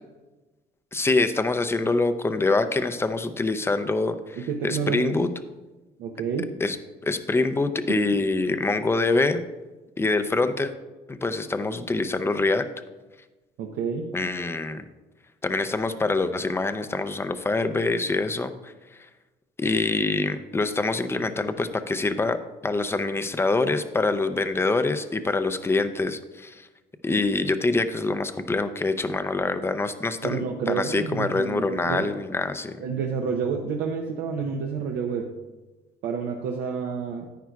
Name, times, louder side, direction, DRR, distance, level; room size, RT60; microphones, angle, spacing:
voice 1, 0.9-5.3 6.6-6.8 7.0-9.4 10.0-10.7 11.1-12.7 14.1-14.8 15.4-18.7 19.6-26.7 27.0-32.8, left 3 dB, 15° left, 10 dB, 0.5 m, -25 dB
voice 2, 4.5-5.2 6.0-6.5 7.9-8.0 13.6-14.1 30.2-32.1 32.8-35.3 36.0-37.3, right 6 dB, 85° right, 1 dB, 0.8 m, -29 dB
10.5 x 9.2 x 2.3 m, 1.2 s
cardioid pair, 110°, 17 cm